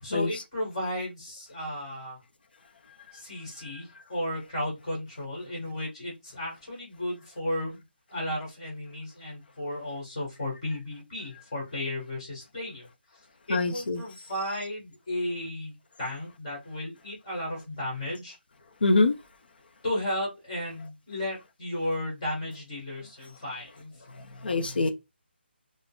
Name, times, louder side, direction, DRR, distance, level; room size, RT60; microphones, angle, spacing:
voice 1, 0.0-2.2 3.1-7.8 8.1-12.9 13.5-18.3 19.8-23.9, left 1 dB, 25° left, 1.3 m, -34 dB
voice 2, 13.5-14.0 18.8-19.2 24.1-24.9, left 3 dB, 55° left, 0.5 m, -24 dB
3.6 x 2.0 x 2.3 m
hypercardioid pair, 180°, 6 cm